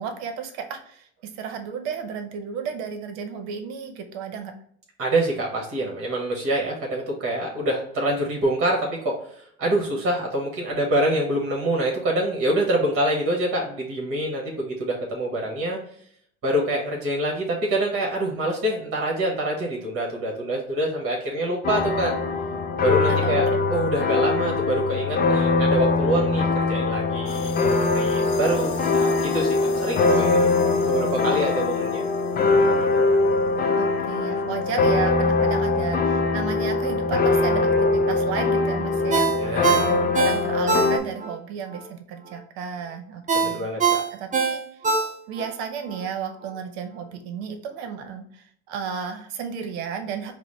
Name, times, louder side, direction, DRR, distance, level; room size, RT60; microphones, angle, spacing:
voice 1, 0.0-4.5 23.1-23.4 33.7-43.7 44.1-44.6 45.3-50.3, right 7 dB, 80° right, 6 dB, 0.7 m, -33 dB
voice 2, 5.0-15.8 16.4-22.1 22.8-30.4 30.9-32.0 39.3-39.8 43.3-44.0, right 1 dB, 45° right, 0 dB, 1.4 m, -26 dB
sound 1, 21.6-41.0, left 3 dB, 30° left, 0.5 m, -22 dB
sound 2, 27.3-33.5, left 7 dB, 65° left, 0.7 m, -41 dB
Ringtone, 39.1-41.4 41.7-41.9 43.3-45.5 45.9-46.0, right 5 dB, 25° right, 0.6 m, -23 dB
4.8 x 2.1 x 3.0 m, 0.64 s
supercardioid pair, 80°, 32 cm